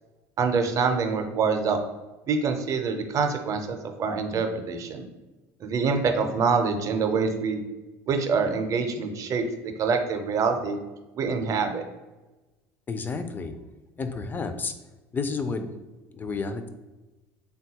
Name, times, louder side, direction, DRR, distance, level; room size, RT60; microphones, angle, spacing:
voice 1, 0.4-1.8 2.3-5.1 5.6-7.6 8.1-9.4 9.8-10.8 11.1-11.8, right 5 dB, 45° right, 5 dB, 0.5 m, -25 dB
voice 2, 12.9-13.5 14.0-14.7 15.1-15.7 16.1-16.7, left 4 dB, 25° left, 8 dB, 0.4 m, -30 dB
3.6 x 2.2 x 2.8 m, 1.1 s
supercardioid pair, 85°, 8 cm